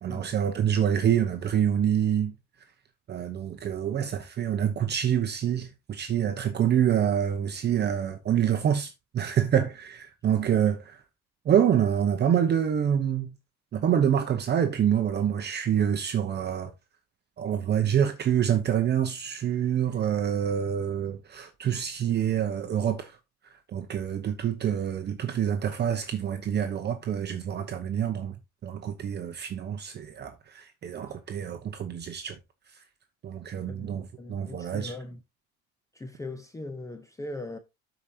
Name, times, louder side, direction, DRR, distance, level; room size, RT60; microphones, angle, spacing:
voice 1, 0.0-2.3 3.1-11.0 11.4-13.3 13.7-16.7 17.4-23.2 23.5-28.4 28.6-32.4 33.2-34.9, right 9 dB, 35° right, 0.9 m, -26 dB
voice 2, 33.7-35.2 35.9-37.6, left 2 dB, 10° left, 0.7 m, -40 dB
13.0 x 5.0 x 2.8 m
cardioid pair, 145°, 30 cm